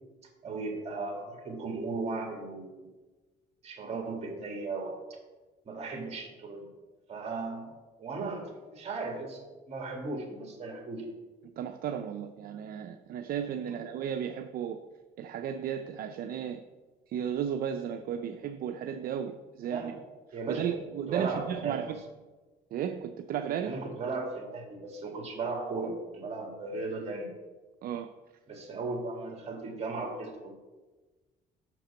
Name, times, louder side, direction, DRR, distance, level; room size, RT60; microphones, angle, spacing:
voice 1, 0.4-2.9 3.6-5.0 5.7-6.7 7.1-7.7 8.0-11.1 13.7-13.8 19.7-20.0 20.3-20.7 21.1-21.8 23.7-27.3 28.5-30.5, right 3 dB, 40° right, 2 dB, 2.3 m, -36 dB
voice 2, 11.6-14.8 15.2-16.6 17.1-19.9 20.3-22.0 22.7-23.8 27.8-28.1, right 8 dB, 60° right, 7 dB, 0.5 m, -34 dB
6.0 x 5.9 x 6.9 m, 1.2 s
cardioid pair, 110°, 17 cm